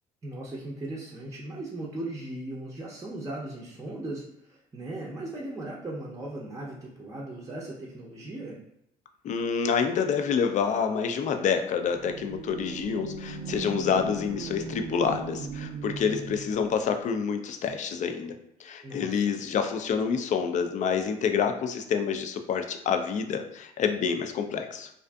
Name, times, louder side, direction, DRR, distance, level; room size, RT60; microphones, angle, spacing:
voice 1, 0.2-8.6 18.8-19.3, right 1 dB, 20° right, -4 dB, 0.6 m, -38 dB
voice 2, 9.2-24.9, left 6 dB, 45° left, 6 dB, 0.4 m, -28 dB
sound 1, 11.8-16.6, right 3 dB, 85° right, 0.4 m, -38 dB
2.5 x 2.4 x 2.2 m, 0.78 s
supercardioid pair, 65°, 17 cm